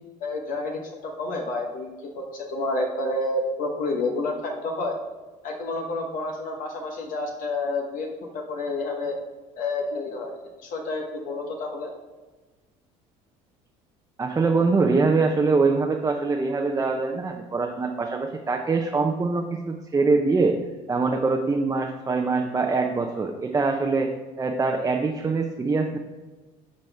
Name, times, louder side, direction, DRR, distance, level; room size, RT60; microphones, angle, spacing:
voice 1, 0.2-5.0 5.4-9.1 9.6-11.9, left 2 dB, 65° left, 1 dB, 1.1 m, -29 dB
voice 2, 14.2-20.6 20.9-24.1 24.4-26.0, right 4 dB, 20° right, 2 dB, 0.7 m, -23 dB
12.0 x 4.1 x 3.4 m, 1.2 s
supercardioid pair, 85°, 15 cm